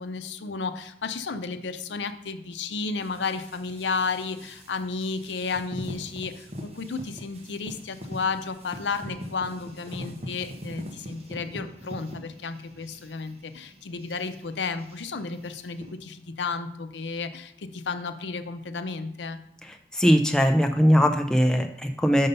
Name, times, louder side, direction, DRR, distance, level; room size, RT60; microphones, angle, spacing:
voice 1, 0.0-19.4, left 4 dB, 90° left, 9 dB, 0.6 m, -32 dB
sound 1, 3.0-16.0, equal, 35° right, 1.0 m, -42 dB
voice 2, 19.9-22.3, equal, 5° left, 4 dB, 0.4 m, -20 dB
5.5 x 5.5 x 5.4 m, 0.75 s
head